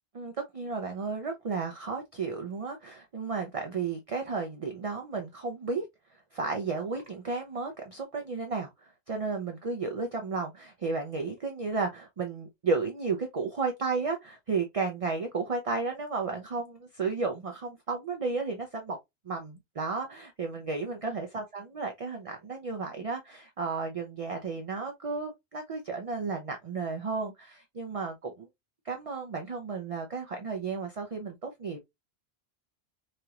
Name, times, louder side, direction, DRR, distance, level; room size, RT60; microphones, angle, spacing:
voice 1, 0.1-5.8 6.3-8.7 9.1-19.0 19.3-28.5 28.9-31.8, right 4 dB, 45° right, 0.5 m, -33 dB
3.1 x 2.9 x 2.3 m
omnidirectional pair, 1.1 m